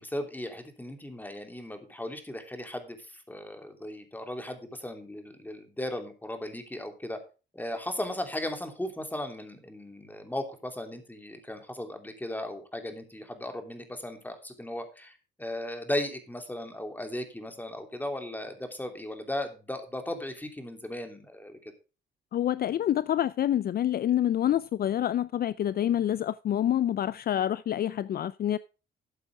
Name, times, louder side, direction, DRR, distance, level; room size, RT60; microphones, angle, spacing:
voice 1, 0.0-7.2 7.5-21.7, left 1 dB, 10° left, 2.9 m, -36 dB
voice 2, 22.3-28.6, left 11 dB, 50° left, 0.4 m, -27 dB
13.0 x 8.1 x 3.4 m
cardioid pair, 90°, 20 cm